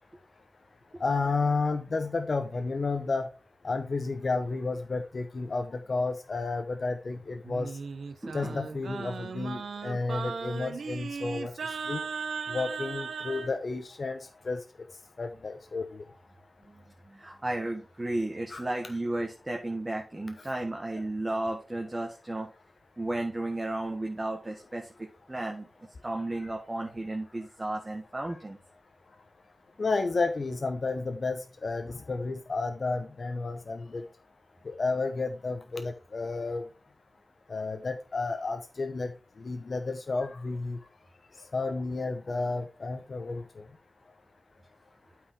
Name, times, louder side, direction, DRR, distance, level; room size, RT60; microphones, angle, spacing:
voice 1, 1.0-3.3 3.6-7.7 8.3-12.0 12.5-14.6 15.2-16.0 18.5-18.6 25.5-25.6 26.4-26.5 29.8-34.0 34.6-36.7 37.5-39.1 39.4-40.8 41.5-43.6, left 3 dB, 55° left, 6 dB, 0.9 m, -31 dB
Singing, 7.4-13.5, right 5 dB, 90° right, 0.7 m, -37 dB
voice 2, 8.2-8.6 16.7-22.5 23.0-25.7 26.0-28.6, right 1 dB, 25° right, 2 dB, 1.4 m, -34 dB
8.5 x 4.9 x 4.6 m, 0.33 s
wide cardioid pair, 80°, 0 cm